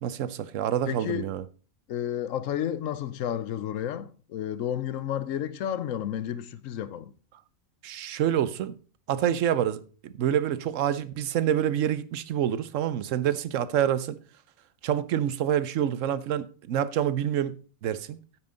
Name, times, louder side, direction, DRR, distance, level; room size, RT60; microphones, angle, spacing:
voice 1, 0.0-1.4 7.8-8.8 9.1-14.2 14.8-18.2, right 10 dB, 70° right, 1.0 m, -27 dB
voice 2, 0.9-1.3 1.9-7.1, left 10 dB, 75° left, 1.0 m, -31 dB
9.5 x 8.9 x 3.8 m
omnidirectional pair, 1.4 m